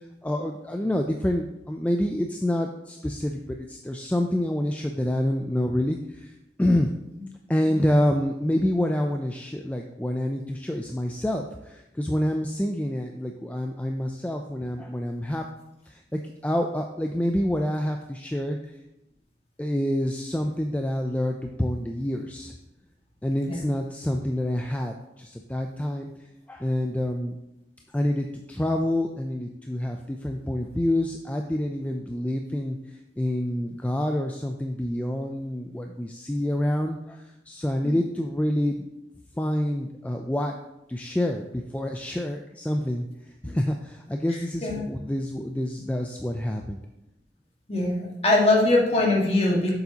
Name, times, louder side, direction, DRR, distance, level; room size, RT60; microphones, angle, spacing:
voice 1, 0.2-6.9 7.5-15.4 15.9-18.6 19.6-22.5 23.2-26.1 26.5-27.3 27.9-38.9 39.4-40.6 40.9-43.1 43.4-46.8, left 1 dB, 10° left, 3 dB, 0.3 m, -27 dB
voice 2, 47.7-49.7, left 2 dB, 35° left, -3 dB, 1.6 m, -22 dB
8.0 x 6.8 x 2.8 m, 0.90 s
head